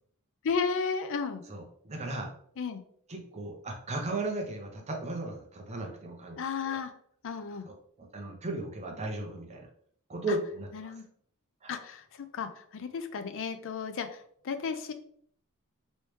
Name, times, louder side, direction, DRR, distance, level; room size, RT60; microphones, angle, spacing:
voice 1, 0.4-1.4 2.6-2.8 6.4-6.9 7.2-7.7 10.7-11.0 11.7-14.9, left 5 dB, 60° left, 9 dB, 0.4 m, -33 dB
voice 2, 1.5-2.3 3.1-6.4 6.6-6.8 7.6-9.7 10.1-11.0 11.6-11.8, right 2 dB, 30° right, 2 dB, 0.7 m, -36 dB
3.1 x 3.1 x 3.1 m, 0.63 s
head